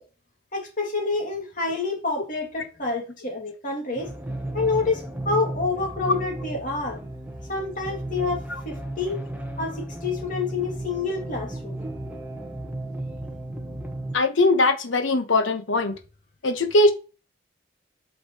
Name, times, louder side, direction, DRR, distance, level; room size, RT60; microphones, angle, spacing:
voice 1, 0.5-4.1 4.5-7.0 7.5-9.2 9.6-11.8, left 4 dB, 40° left, 2.3 m, -28 dB
sound 1, 4.0-14.2, right 1 dB, 10° right, 1.1 m, -34 dB
voice 2, 14.1-15.9 16.4-16.9, left 2 dB, 75° left, 1.1 m, -20 dB
8.2 x 5.2 x 3.0 m
head